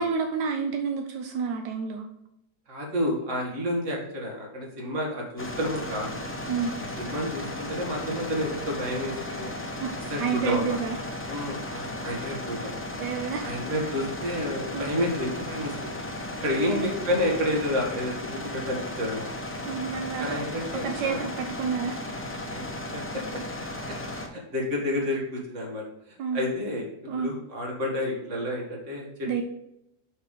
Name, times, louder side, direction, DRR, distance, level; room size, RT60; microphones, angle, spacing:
voice 1, 0.0-2.1 6.5-6.7 9.8-9.9 10.2-11.0 13.0-13.6 14.7-14.9 16.4-16.9 19.6-20.4 20.8-22.0 26.2-26.5 27.1-27.3 29.2-29.4, right 6 dB, 85° right, 4 dB, 1.3 m, -29 dB
voice 2, 2.7-6.2 7.0-9.5 10.1-10.8 11.3-12.6 13.4-15.9 16.4-19.3 20.2-21.2 22.5-22.6 22.9-23.0 24.3-25.8 26.3-26.9 27.2-29.4, left 1 dB, 45° right, -1 dB, 2.1 m, -30 dB
sound 1, 5.4-24.3, left 1 dB, 15° left, 0.4 m, -35 dB
5.9 x 5.8 x 3.7 m, 0.81 s
omnidirectional pair, 1.8 m